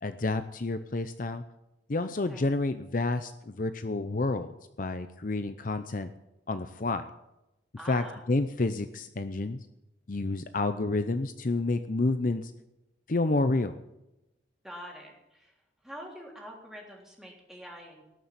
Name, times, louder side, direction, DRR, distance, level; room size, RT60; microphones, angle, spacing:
voice 1, 0.0-1.4 1.9-4.5 4.8-6.1 6.5-7.0 7.9-9.6 10.1-12.5 13.1-13.8, left 2 dB, 45° left, 10 dB, 0.6 m, -29 dB
voice 2, 7.8-8.2 14.6-15.5 15.8-18.0, equal, 5° right, -2 dB, 3.5 m, -45 dB
18.5 x 6.8 x 9.5 m, 0.93 s
head